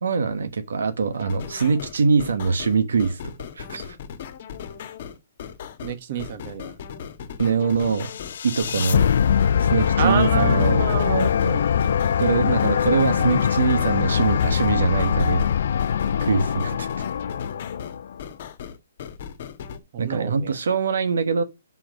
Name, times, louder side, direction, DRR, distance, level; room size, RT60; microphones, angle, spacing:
voice 1, 0.0-4.0 7.4-8.1 8.4-9.1 9.6-10.9 12.2-15.5 16.2-16.9 20.0-21.4, right 5 dB, 80° right, 1.1 m, -23 dB
sound 1, 1.1-19.8, left 7 dB, 45° left, 1.5 m, -38 dB
voice 2, 5.8-6.7 10.0-11.6 12.5-12.6 13.2-13.3 19.9-20.6, right 7 dB, 45° right, 1.4 m, -28 dB
sound 2, 8.0-18.2, left 8 dB, 60° left, 0.4 m, -22 dB
5.7 x 5.1 x 6.4 m
hypercardioid pair, 160°, 0 cm